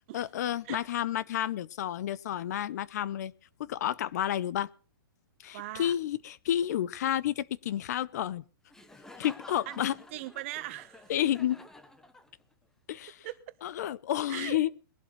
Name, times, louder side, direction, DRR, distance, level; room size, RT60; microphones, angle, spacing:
voice 1, 0.1-3.3 3.6-4.7 5.4-8.4 9.2-10.0 11.1-11.6 12.9-13.2 13.6-14.7, left 11 dB, 45° left, 0.5 m, -30 dB
voice 2, 5.5-5.9 9.7-11.1 13.2-13.4 14.3-14.6, right 17 dB, 35° right, 0.9 m, -40 dB
Laughter, 8.7-12.6, left 2 dB, 5° left, 0.8 m, -51 dB
21.5 x 11.5 x 3.1 m
hypercardioid pair, 165°, 12 cm